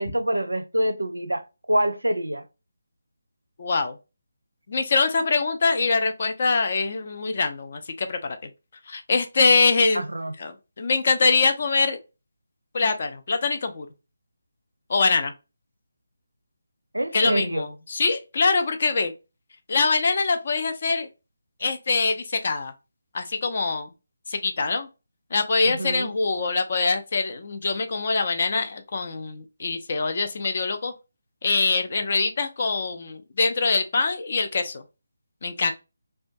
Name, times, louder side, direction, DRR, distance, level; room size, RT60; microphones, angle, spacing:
voice 1, 0.0-1.4 1.7-2.4 9.9-10.3 16.9-17.6 25.6-26.1, right 1 dB, 90° right, 0.4 m, -26 dB
voice 2, 3.6-4.0 4.7-8.4 8.9-10.0 10.4-12.0 12.7-13.9 14.9-15.3 17.1-19.1 19.7-21.1 21.6-22.7 23.1-23.9 24.3-24.9 25.3-30.9 31.4-34.8 35.4-35.7, left 4 dB, 45° left, 0.4 m, -24 dB
2.5 x 2.2 x 2.5 m
figure-of-eight pair, 155°, 0 cm